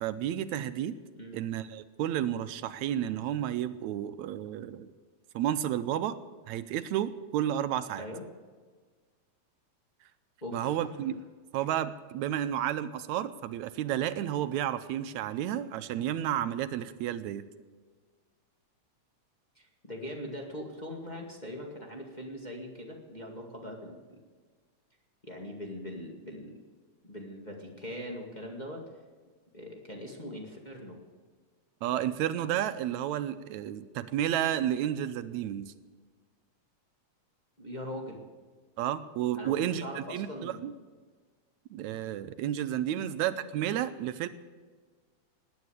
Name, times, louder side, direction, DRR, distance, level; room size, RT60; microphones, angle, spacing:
voice 1, 0.0-1.0 1.3-4.9 5.4-6.2 6.5-8.0 10.5-11.2 11.5-17.4 31.8-35.7 38.8-40.7 41.7-44.3, right 11 dB, 80° right, 12 dB, 2.0 m, -31 dB
voice 2, 10.4-10.8 19.6-24.2 25.2-26.6 27.0-28.8 29.5-31.0 37.6-38.2 39.4-40.7 42.9-43.1, equal, 15° left, 0 dB, 1.9 m, -41 dB
18.5 x 9.6 x 8.1 m, 1.5 s
omnidirectional pair, 3.3 m